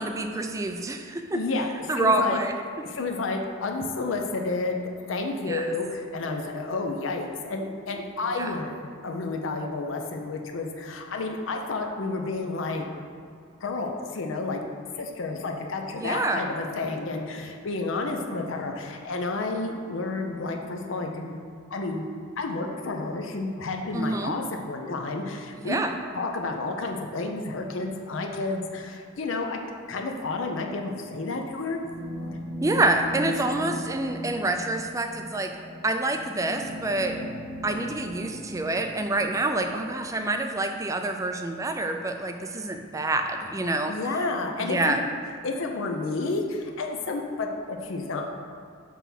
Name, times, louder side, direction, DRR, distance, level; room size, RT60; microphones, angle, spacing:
voice 1, 0.0-1.4 1.9-2.5 5.4-5.7 8.3-8.6 15.9-16.5 23.9-24.3 25.6-25.9 32.6-35.5 35.8-37.2 37.6-43.9 44.6-45.0, right 2 dB, 15° right, 5 dB, 0.4 m, -27 dB
voice 2, 1.3-1.7 1.9-2.4 2.8-12.9 13.6-14.6 14.9-21.4 21.7-22.0 22.4-25.8 26.1-29.6 29.9-31.8 43.9-45.0 45.4-48.3, left 3 dB, 70° left, 3 dB, 0.6 m, -30 dB
sound 1, 31.8-40.7, equal, 75° right, 1.4 m, -39 dB
6.1 x 3.4 x 5.9 m, 2.3 s
head